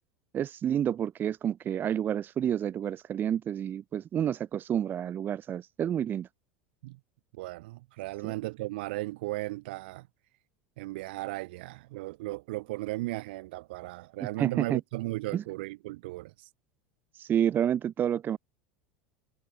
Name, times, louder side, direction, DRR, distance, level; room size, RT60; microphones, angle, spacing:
voice 1, 0.3-6.3 8.2-8.3 14.4-14.8 15.3-15.4 17.1-18.4, right 9 dB, 35° right, 0.6 m, -29 dB
voice 2, 7.3-10.1 10.8-16.5, right 20 dB, 70° right, 1.1 m, -36 dB
hypercardioid pair, 85°, 6 cm